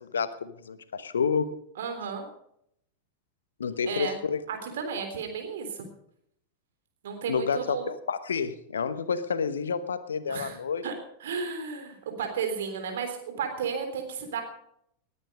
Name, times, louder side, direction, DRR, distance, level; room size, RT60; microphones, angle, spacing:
voice 1, 0.0-1.5 3.6-4.4 7.3-10.8, left 6 dB, 70° left, 14 dB, 1.0 m, -29 dB
voice 2, 1.8-2.3 3.9-4.2 4.5-5.9 7.0-7.9 10.3-10.6 10.8-10.9 11.2-14.4, right 6 dB, 60° right, 5 dB, 3.5 m, -33 dB
19.5 x 9.8 x 5.2 m, 0.73 s
figure-of-eight pair, 90°, 0 cm